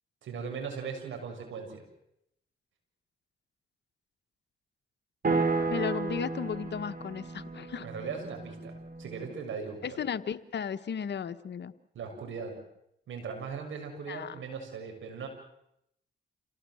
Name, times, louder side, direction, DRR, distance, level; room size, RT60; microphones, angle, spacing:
voice 1, 0.2-1.8 7.8-10.0 11.9-12.6 13.1-15.3, right 5 dB, 80° right, 4 dB, 6.8 m, -39 dB
sound 1, 5.2-9.4, right 3 dB, 45° right, 5.7 m, -33 dB
voice 2, 5.7-7.9 9.8-11.7 14.1-14.3, left 7 dB, 60° left, 12 dB, 1.2 m, -35 dB
28.0 x 18.0 x 7.8 m, 0.79 s
cardioid pair, 60°, 20 cm